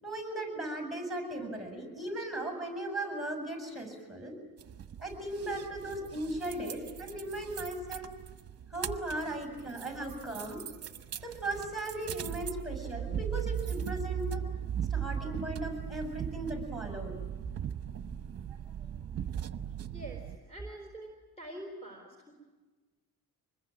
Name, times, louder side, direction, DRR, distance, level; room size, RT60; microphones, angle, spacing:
voice 1, 0.0-4.4 5.0-8.1 8.7-14.4 14.9-17.1, right 1 dB, ahead, 7 dB, 6.7 m, -37 dB
sound 1, 4.6-20.4, right 9 dB, 40° right, 1.0 m, -38 dB
voice 2, 19.9-21.1 21.4-22.3, right 1 dB, 15° left, 1 dB, 4.4 m, -46 dB
25.5 x 21.5 x 9.0 m, 1.3 s
cardioid pair, 140°, 38 cm